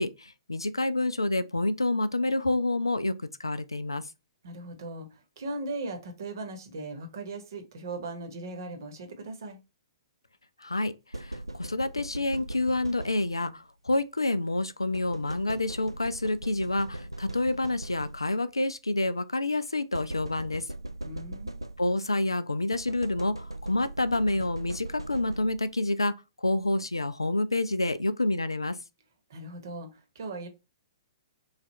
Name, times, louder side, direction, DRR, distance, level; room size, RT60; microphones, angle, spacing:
voice 1, 0.0-4.0 10.6-20.7 21.8-28.8, left 2 dB, 80° left, 0.4 m, -28 dB
voice 2, 4.4-9.6 21.0-21.6 29.3-30.5, right 2 dB, 50° right, 1.0 m, -38 dB
sound 1, 11.1-13.6 14.9-18.5 19.9-22.1 22.7-25.8, right 1 dB, 90° right, 0.3 m, -40 dB
3.2 x 2.4 x 4.1 m
figure-of-eight pair, 115°, 2 cm